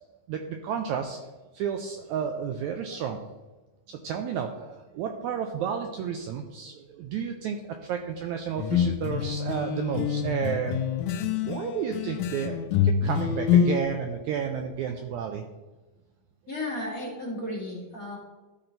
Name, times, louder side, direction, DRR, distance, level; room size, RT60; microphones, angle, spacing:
voice 1, 0.3-1.2 1.5-3.2 3.9-10.8 11.5-15.4, right 7 dB, 80° right, 5 dB, 1.7 m, -32 dB
sound 1, 8.6-13.8, left 8 dB, 80° left, 1.6 m, -26 dB
voice 2, 16.5-18.2, left 1 dB, 30° left, -5 dB, 2.0 m, -34 dB
13.0 x 4.4 x 4.0 m, 1.2 s
omnidirectional pair, 3.8 m